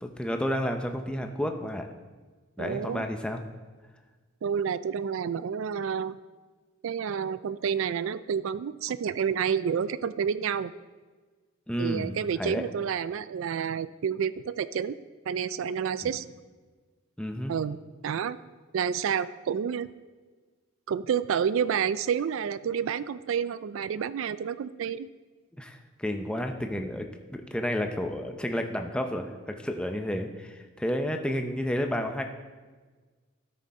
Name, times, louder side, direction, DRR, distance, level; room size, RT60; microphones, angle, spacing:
voice 1, 0.0-1.9 2.6-3.4 11.7-12.1 12.4-12.6 16.0-16.2 17.2-17.5 25.6-27.1 27.3-32.2, equal, 5° left, 5 dB, 0.6 m, -31 dB
voice 2, 2.6-3.0 4.4-6.2 6.8-10.7 11.8-15.0 15.3-16.2 17.5-17.8 18.0-18.4 18.7-19.9 20.9-25.1, right 7 dB, 70° right, 15 dB, 0.3 m, -29 dB
13.0 x 6.5 x 4.2 m, 1.4 s
head